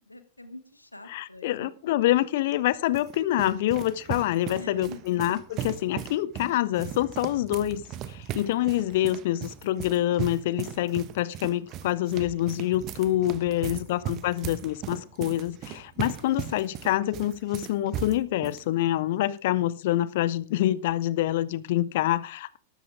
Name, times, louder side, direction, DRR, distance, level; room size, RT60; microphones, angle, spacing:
voice 1, 0.0-1.7 4.6-5.2 13.5-14.2, left 1 dB, 85° left, 11 dB, 1.4 m, -45 dB
voice 2, 1.1-7.8 8.1-22.6, left 14 dB, 55° left, 19 dB, 0.8 m, -26 dB
sound 1, 2.5-18.6, right 11 dB, 35° right, 1.0 m, -38 dB
13.0 x 13.0 x 3.6 m, 0.39 s
figure-of-eight pair, 90°, 0 cm